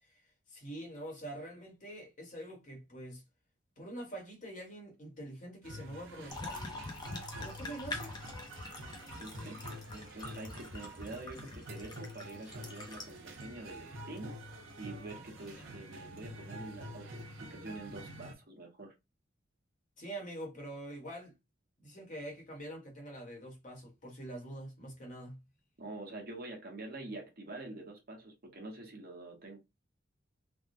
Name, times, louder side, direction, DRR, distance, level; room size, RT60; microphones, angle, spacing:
voice 1, 0.5-3.2 3.8-6.6 7.4-8.1 20.0-21.3 21.8-25.4, right 1 dB, 40° left, 1.3 m, -45 dB
sound 1, 5.6-18.3, equal, 75° right, 0.9 m, -47 dB
sound 2, 6.3-13.4 14.2-14.3 15.4-15.7, left 2 dB, 20° left, 0.6 m, -45 dB
voice 2, 9.2-9.6 9.9-14.3 14.8-18.9 25.8-29.6, right 2 dB, 50° right, 1.0 m, -46 dB
3.5 x 2.2 x 2.6 m
head